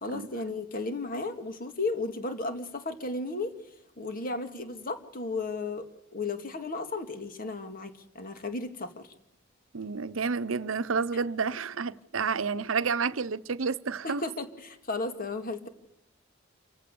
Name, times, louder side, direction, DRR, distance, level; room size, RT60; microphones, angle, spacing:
voice 1, 0.0-3.6 4.0-9.1 14.0-15.7, left 3 dB, 45° left, 2.2 m, -34 dB
voice 2, 9.7-14.2, right 5 dB, 80° right, 0.8 m, -30 dB
27.0 x 15.5 x 7.0 m
head